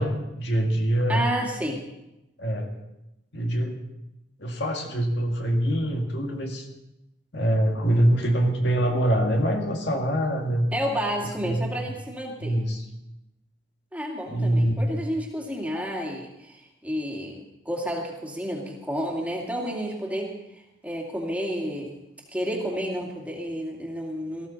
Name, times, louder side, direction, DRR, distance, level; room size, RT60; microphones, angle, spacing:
voice 1, 0.0-1.2 2.4-2.8 3.3-3.8 4.4-6.7 7.3-10.7 11.4-11.7 12.4-12.8 14.3-14.9, right 1 dB, 60° left, 2 dB, 1.9 m, -24 dB
voice 2, 1.1-1.8 10.7-12.6 13.9-21.9 22.3-24.5, equal, 5° right, -1 dB, 2.3 m, -31 dB
19.0 x 14.0 x 4.1 m, 0.90 s
head